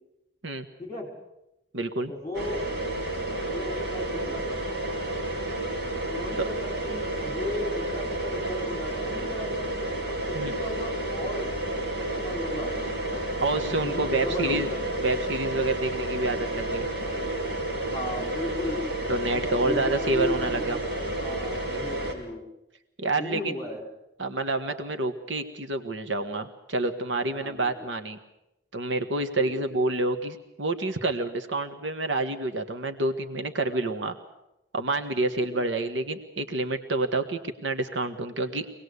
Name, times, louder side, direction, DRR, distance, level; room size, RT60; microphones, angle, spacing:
voice 1, 0.8-1.1 2.1-2.6 3.5-4.6 6.1-9.7 10.1-11.6 12.0-13.2 13.6-14.8 17.8-18.8 19.3-20.7 21.0-22.4 23.2-23.8 27.4-27.9 29.3-29.6 35.3-35.6, left 2 dB, 20° left, 3 dB, 4.9 m, -35 dB
voice 2, 1.7-2.1 6.4-6.5 10.3-10.5 13.4-14.7 15.0-16.9 19.1-20.8 23.0-23.5 24.2-28.2 28.7-34.1 34.7-38.7, right 2 dB, 90° right, 6 dB, 1.5 m, -28 dB
sound 1, 2.3-22.1, right 1 dB, 65° right, 4.6 m, -31 dB
24.5 x 19.0 x 8.2 m, 0.92 s
head